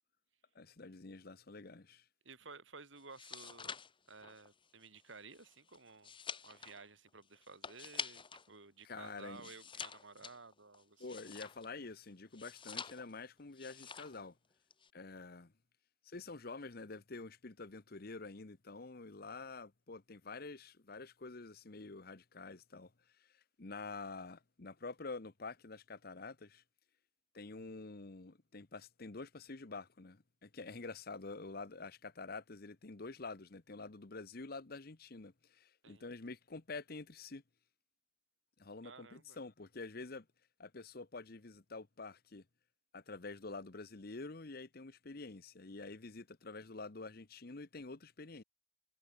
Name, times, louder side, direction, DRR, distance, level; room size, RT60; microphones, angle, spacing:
voice 1, 0.5-2.0 8.8-9.5 11.0-14.4 14.9-15.5 16.1-22.9 23.2-23.3 23.6-26.6 27.3-37.4 38.6-40.3 40.6-42.4 42.9-48.4, left 3 dB, 55° left, 1.0 m, -48 dB
voice 2, 2.3-3.8 4.1-6.1 6.4-11.0 35.8-36.1 38.8-39.4, right 4 dB, 90° right, 3.6 m, -55 dB
sound 1, 3.0-8.5 8.8-11.8 12.3-13.2 13.5-14.2 14.5-14.9, left 6 dB, 25° left, 1.6 m, -47 dB
head